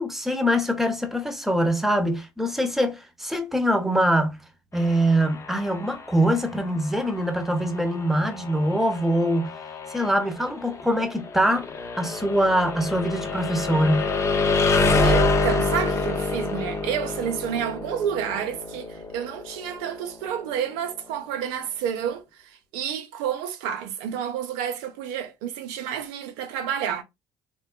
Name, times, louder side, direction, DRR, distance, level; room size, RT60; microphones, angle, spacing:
voice 1, 0.0-4.4 4.7-9.5 9.9-11.7 11.9-14.1, equal, 5° right, 0.7 m, -23 dB
sound 1, 4.7-20.6, left 3 dB, 35° left, 0.7 m, -28 dB
voice 2, 15.0-27.0, right 9 dB, 90° right, 0.6 m, -30 dB
3.4 x 2.2 x 2.2 m
supercardioid pair, 90°, 8 cm